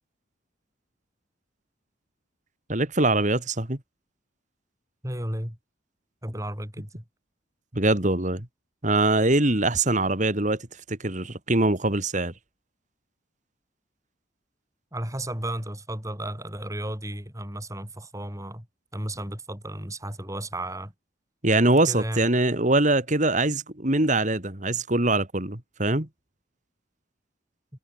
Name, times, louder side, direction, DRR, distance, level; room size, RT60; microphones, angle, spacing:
voice 1, 2.7-3.8 7.7-8.5 8.8-12.3 21.4-26.1, right 2 dB, 40° right, 2.8 m, -23 dB
voice 2, 5.0-5.6 6.2-7.0 14.9-18.7 18.9-20.9 21.9-22.3, right 1 dB, 15° right, 7.9 m, -33 dB
head